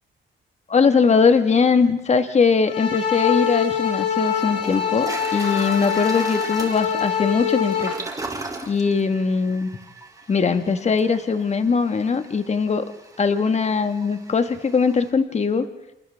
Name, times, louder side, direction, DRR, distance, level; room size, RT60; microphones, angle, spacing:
voice 1, 0.7-7.9 8.6-9.7 10.3-12.9 13.2-15.7, left 5 dB, 35° left, 9 dB, 1.5 m, -20 dB
sound 1, 2.7-7.9, left 8 dB, 65° left, 3.6 m, -24 dB
Toilet flush, 3.8-3.9 4.3-15.1, right 2 dB, 15° right, 3.2 m, -38 dB
28.0 x 27.5 x 3.5 m, 0.89 s
cardioid pair, 90°, 20 cm